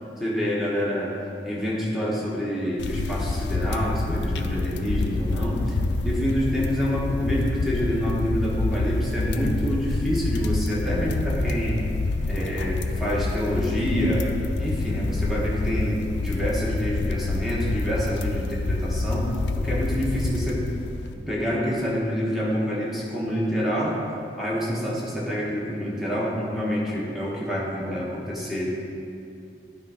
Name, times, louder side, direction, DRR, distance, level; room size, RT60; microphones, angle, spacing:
voice 1, 0.2-1.2 1.4-5.8 6.0-11.8 12.3-14.3 14.6-20.7 21.1-24.0 24.4-28.7, equal, ahead, -6 dB, 1.2 m, -27 dB
sound 1, 2.8-21.1, left 2 dB, 85° left, 0.4 m, -27 dB
10.5 x 3.6 x 4.9 m, 2.5 s
head